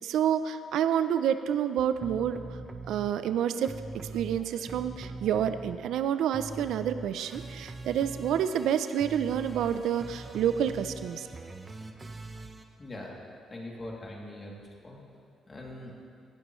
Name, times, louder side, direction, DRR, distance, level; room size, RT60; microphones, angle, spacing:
voice 1, 0.0-2.6 2.9-11.3, right 9 dB, 80° right, 11 dB, 0.5 m, -28 dB
sound 1, 2.0-3.1 3.6-6.0 6.3-12.6, right 3 dB, 25° right, 0.9 m, -42 dB
voice 2, 12.8-13.2 13.5-15.0 15.5-15.9, left 1 dB, 30° left, -2 dB, 2.7 m, -42 dB
17.5 x 11.5 x 3.1 m, 2.4 s
cardioid pair, 90°, 0 cm